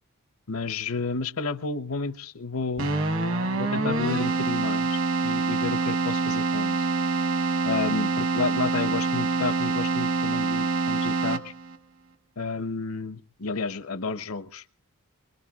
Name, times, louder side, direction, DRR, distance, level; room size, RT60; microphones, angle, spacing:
voice 1, 0.5-2.9 3.5-6.9 7.6-11.5 12.4-14.6, left 4 dB, 75° left, 13 dB, 0.8 m, -31 dB
Keyboard (musical), 2.8-11.8, right 3 dB, 60° right, 1.1 m, -26 dB
25.0 x 21.5 x 2.4 m, 0.38 s
head